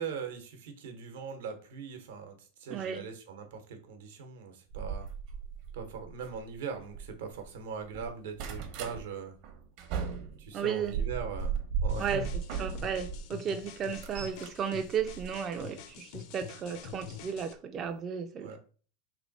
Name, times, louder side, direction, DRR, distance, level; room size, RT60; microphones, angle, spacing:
voice 1, 0.0-5.1 5.7-9.4 10.4-11.5 11.8-12.3 18.4-18.6, right 6 dB, 80° right, 0.9 m, -40 dB
voice 2, 2.7-3.1 10.5-10.9 12.0-12.3 12.6-18.6, right 7 dB, 30° right, 0.3 m, -34 dB
sound 1, 4.7-7.5 7.8-9.0 9.4-13.2 13.6-15.8 16.9-17.1 17.5-17.6 17.8-17.9, right 6 dB, 50° right, 0.8 m, -37 dB
sound 2, 11.9-17.5, left 8 dB, 55° left, 0.5 m, -47 dB
3.2 x 2.9 x 4.0 m
supercardioid pair, 140°, 0 cm